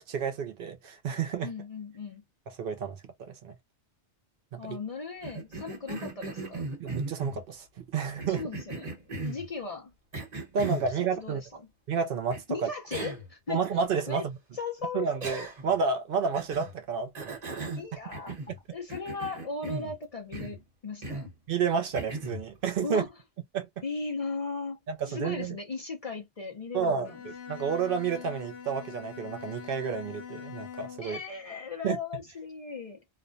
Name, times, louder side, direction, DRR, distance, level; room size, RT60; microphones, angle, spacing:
voice 1, 0.0-1.5 2.5-3.5 4.5-4.8 6.8-8.4 10.5-11.4 11.9-12.7 13.5-14.3 14.9-17.7 18.3-18.4 21.5-23.0 23.5-23.7 24.9-25.6 26.7-31.2 31.8-32.0, right 6 dB, 65° right, 0.7 m, -30 dB
voice 2, 1.4-2.2 4.6-6.7 8.3-9.9 10.6-10.7 11.2-11.5 12.5-13.6 14.1-14.3 14.5-15.1 17.8-18.4 18.7-21.3 22.8-23.1 23.8-24.8 25.1-27.2 31.0-33.0, left 4 dB, 45° left, 0.5 m, -37 dB
Cough, 5.2-7.4 8.2-9.5 10.1-10.9 12.3-12.4 12.9-13.3 13.6-13.7 15.2-15.8 16.3-16.7 17.1-18.6 18.9-20.0 20.3-20.6 21.0-21.3 21.9-22.4, right 2 dB, 40° right, 1.0 m, -37 dB
Bowed string instrument, 27.0-31.2, left 7 dB, 70° left, 0.8 m, -43 dB
2.4 x 2.1 x 2.5 m
omnidirectional pair, 1.1 m